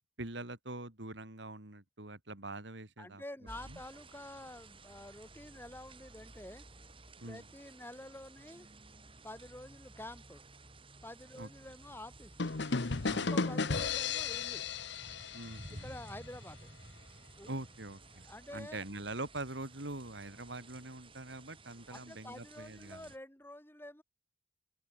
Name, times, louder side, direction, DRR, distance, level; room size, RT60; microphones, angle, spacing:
voice 1, 0.2-3.2 3.7-3.8 7.2-7.4 11.4-11.5 13.0-13.3 15.3-15.9 17.5-18.3 18.5-23.1, right 2 dB, 65° right, 3.0 m, -44 dB
voice 2, 3.0-6.6 7.2-8.7 9.2-10.4 11.0-12.5 13.1-14.7 15.8-16.7 17.4-17.5 18.1-18.8 21.9-24.0, left 1 dB, 10° left, 3.2 m, -48 dB
sound 1, 3.5-23.2, right 2 dB, 25° right, 7.2 m, -54 dB
sound 2, 12.4-16.1, left 4 dB, 65° left, 1.0 m, -34 dB
open air
head